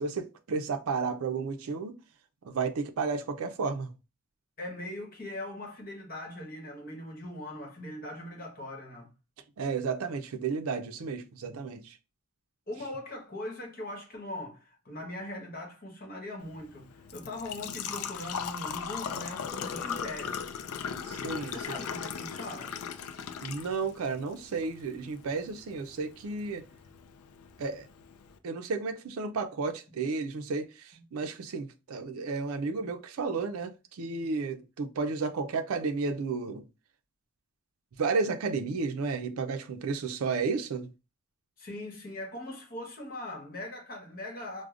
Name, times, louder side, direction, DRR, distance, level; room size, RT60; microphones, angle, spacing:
voice 1, 0.0-2.0 2.4-3.9 9.6-11.9 21.1-21.5 23.4-26.6 27.6-27.8 28.4-36.6 38.0-40.9, right 4 dB, 80° right, 0.4 m, -32 dB
voice 2, 4.6-9.1 12.7-20.5 21.4-22.8 30.9-31.0 41.6-44.7, left 1 dB, 40° left, 1.1 m, -40 dB
Engine / Trickle dribble / Fill (with liquid), 16.4-28.4, left 7 dB, 90° left, 0.4 m, -39 dB
4.8 x 2.1 x 2.4 m
head